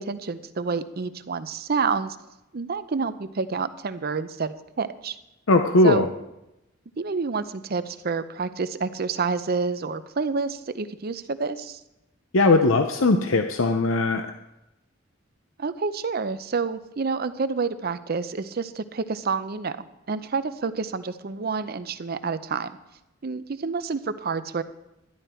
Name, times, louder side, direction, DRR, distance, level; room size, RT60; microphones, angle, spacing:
voice 1, 0.0-2.2 2.5-5.2 5.8-6.1 7.0-11.8 15.6-22.7 23.2-24.6, right 4 dB, 50° right, 13 dB, 0.6 m, -28 dB
voice 2, 5.5-6.1 12.3-14.3, left 2 dB, 85° left, 7 dB, 0.7 m, -19 dB
12.0 x 11.0 x 4.4 m, 0.93 s
head